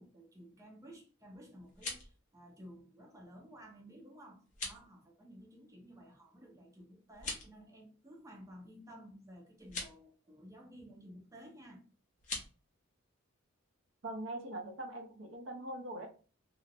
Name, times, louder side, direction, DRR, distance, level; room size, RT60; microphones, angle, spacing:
voice 1, 0.0-11.8, equal, 15° right, 0.6 m, -54 dB
sound 1, 1.6-2.2 4.5-4.9 7.1-7.6 9.6-9.9 12.2-12.5, left 3 dB, 35° left, 0.8 m, -42 dB
voice 2, 14.0-16.1, right 1 dB, 60° right, 0.7 m, -42 dB
2.9 x 2.1 x 2.4 m
head